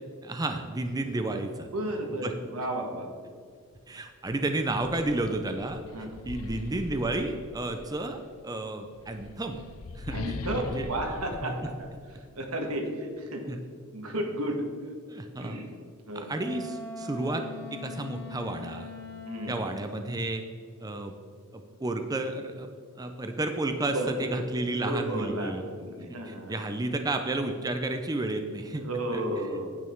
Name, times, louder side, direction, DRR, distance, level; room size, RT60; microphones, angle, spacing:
voice 1, 0.2-1.7 2.2-2.4 3.9-5.8 6.2-9.6 9.9-10.9 11.4-11.5 13.5-13.6 15.1-15.6 16.1-17.5 17.7-18.9 19.5-20.4 20.8-21.1 21.5-22.7 23.0-25.7 26.1-28.8 29.1-29.3, right 2 dB, 15° right, 6 dB, 0.5 m, -32 dB
voice 2, 1.7-3.1 5.9-6.1 10.1-11.9 12.3-13.6 13.9-14.6 15.4-15.7 16.1-16.3 19.2-19.7 23.9-24.5 24.7-26.6 28.7-29.7, right 1 dB, 85° right, 3 dB, 1.6 m, -33 dB
sound 1, 3.7-3.9 4.3-7.9 8.9-12.5, left 3 dB, 80° left, 0.5 m, -41 dB
Wind instrument woodwind instrument, 16.3-19.8, left 3 dB, 15° left, 2.7 m, -41 dB
9.3 x 8.5 x 4.5 m, 2.1 s
head